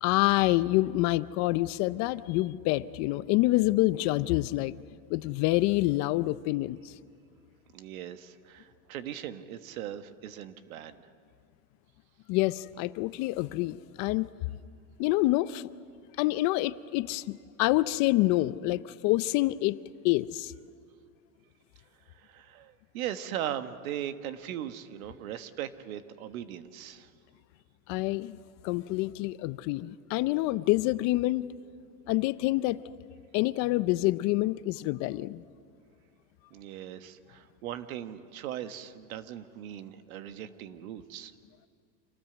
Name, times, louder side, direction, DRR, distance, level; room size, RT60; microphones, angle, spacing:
voice 1, 0.0-4.7 5.1-6.9 12.3-14.3 15.0-15.7 16.2-19.8 20.0-20.5 27.9-28.4 28.6-31.5 32.1-32.8 33.3-35.4, left 18 dB, 45° left, 16 dB, 0.6 m, -27 dB
voice 2, 7.7-11.0 22.1-27.1 36.5-41.3, right 11 dB, 85° right, 10 dB, 1.4 m, -39 dB
26.5 x 18.5 x 7.9 m, 2.3 s
supercardioid pair, 145°, 41 cm